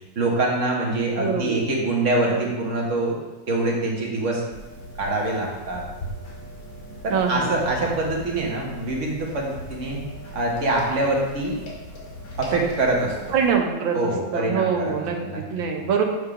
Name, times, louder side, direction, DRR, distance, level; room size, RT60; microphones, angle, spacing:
voice 1, 0.1-3.1 3.5-4.4 5.0-5.8 7.0-10.0 10.3-11.6 12.4-13.2 13.9-14.9 15.2-15.4 15.8-15.9, right 2 dB, 45° right, -2 dB, 1.4 m, -24 dB
voice 2, 1.2-1.7 7.1-7.6 13.3-16.0, right 6 dB, 85° right, 2 dB, 1.6 m, -24 dB
sound 1, 4.5-13.5, equal, 85° left, 2.2 m, -39 dB
8.0 x 3.7 x 4.8 m, 1.1 s
omnidirectional pair, 2.1 m